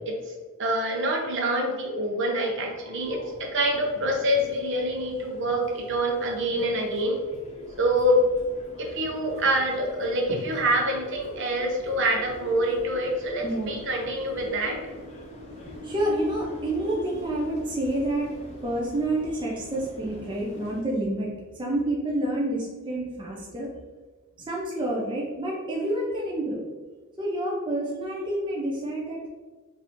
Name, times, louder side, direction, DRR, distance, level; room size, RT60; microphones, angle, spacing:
voice 1, 0.6-7.2 7.8-8.2 8.8-14.8, equal, 60° right, 1 dB, 0.7 m, -26 dB
sound 1, 3.0-20.8, left 1 dB, 30° left, 0.6 m, -44 dB
voice 2, 13.4-13.7 15.8-18.3 18.6-23.7 24.4-26.6 27.2-29.3, right 1 dB, 20° right, -3 dB, 0.5 m, -28 dB
3.8 x 2.5 x 2.9 m, 1.3 s
head